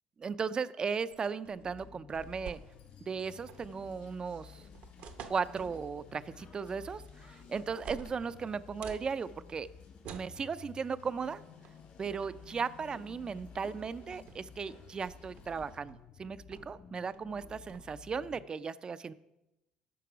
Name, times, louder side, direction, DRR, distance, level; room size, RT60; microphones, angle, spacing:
voice 1, 0.2-2.6 3.1-4.6 5.3-9.7 10.1-11.4 12.0-19.1, right 5 dB, 30° right, 15 dB, 0.4 m, -36 dB
sound 1, 1.1-2.9 3.3-3.8 4.4-5.9 6.9-7.3 7.5-9.1 10.0-10.4 11.6-11.8 12.2-12.5 13.4-13.5 13.8-14.4 14.8-16.0 16.5-16.8 17.1-17.8, right 7 dB, 65° right, 0.8 m, -50 dB
sound 2, 1.6-18.5, left 7 dB, 45° left, 0.5 m, -54 dB
sound 3, 2.2-15.8, left 3 dB, 70° left, 3.2 m, -62 dB
9.4 x 5.8 x 5.0 m, 0.94 s
supercardioid pair, 90°, 3 cm